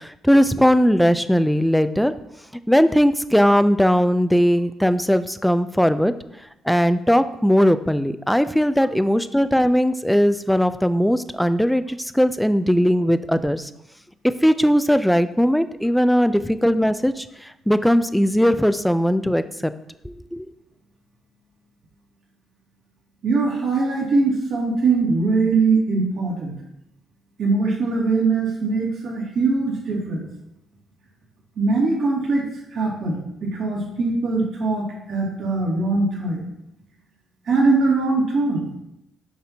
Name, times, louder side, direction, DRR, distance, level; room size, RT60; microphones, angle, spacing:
voice 1, 0.0-2.1 2.7-6.1 6.7-13.7 14.2-19.7 20.0-20.5, equal, ahead, 12 dB, 0.4 m, -19 dB
voice 2, 23.2-26.5 27.4-30.2 31.6-36.5 37.5-38.7, right 3 dB, 70° right, -4 dB, 2.4 m, -21 dB
7.6 x 5.8 x 2.8 m, 0.84 s
cardioid pair, 90°, 0 cm